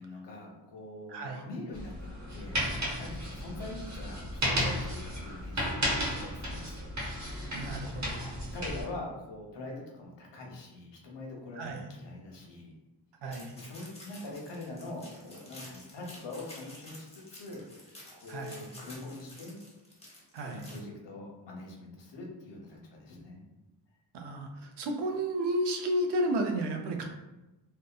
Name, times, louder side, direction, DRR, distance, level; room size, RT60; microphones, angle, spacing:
voice 1, 0.0-2.6 3.0-6.9 8.0-12.7 13.2-17.6 18.1-19.6 20.4-23.4, left 2 dB, 75° left, -1 dB, 0.8 m, -44 dB
voice 2, 1.1-1.4 7.5-8.3 11.6-11.8 13.2-13.5 18.3-18.5 20.3-20.6 24.1-27.1, right 1 dB, 70° right, 3 dB, 0.5 m, -32 dB
sound 1, 1.7-8.8, equal, 40° right, 0.9 m, -34 dB
sound 2, 13.3-20.8, left 1 dB, 15° left, 0.8 m, -51 dB
2.7 x 2.1 x 2.3 m, 1.0 s
cardioid pair, 85°, 43 cm